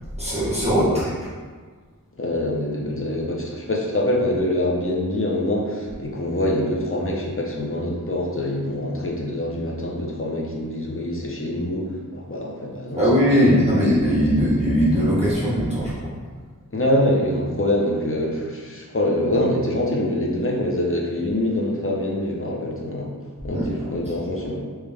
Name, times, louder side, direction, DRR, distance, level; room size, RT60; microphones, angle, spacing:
voice 1, 0.2-1.0 13.0-15.9 23.5-23.7, equal, 20° right, -10 dB, 1.1 m, -19 dB
voice 2, 2.2-13.1 13.4-13.8 16.7-23.1 23.4-24.6, left 1 dB, 40° left, -2 dB, 0.8 m, -25 dB
3.3 x 3.1 x 3.5 m, 1.5 s
wide cardioid pair, 45°, 34 cm